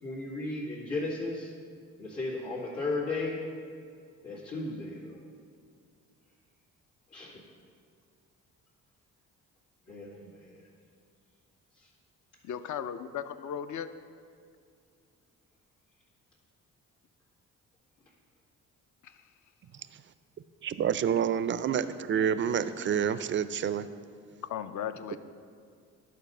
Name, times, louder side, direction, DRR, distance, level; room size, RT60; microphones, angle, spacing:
voice 1, 0.0-1.5 2.0-3.4 4.2-5.2 7.1-7.4 9.9-10.6 11.8-11.9, left 2 dB, 85° left, -7 dB, 2.0 m, -35 dB
voice 2, 12.4-13.9 19.0-19.2 24.5-25.2, left 9 dB, 45° left, 11 dB, 0.6 m, -36 dB
voice 3, 20.6-23.9 25.1-25.2, right 8 dB, 30° right, 14 dB, 0.4 m, -28 dB
11.0 x 4.2 x 5.4 m, 2.2 s
hypercardioid pair, 45°, 40 cm